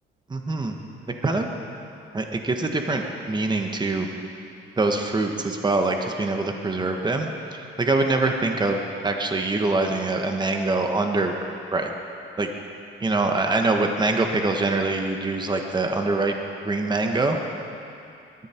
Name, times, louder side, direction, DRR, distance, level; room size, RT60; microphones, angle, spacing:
voice 1, 0.3-0.8 1.2-1.5 2.1-4.1 4.8-11.4 11.7-11.9 12.4-12.5 13.0-16.3 16.6-17.4, right 3 dB, 20° right, 3 dB, 1.4 m, -24 dB
21.5 x 13.5 x 4.5 m, 2.6 s
cardioid pair, 90°, 20 cm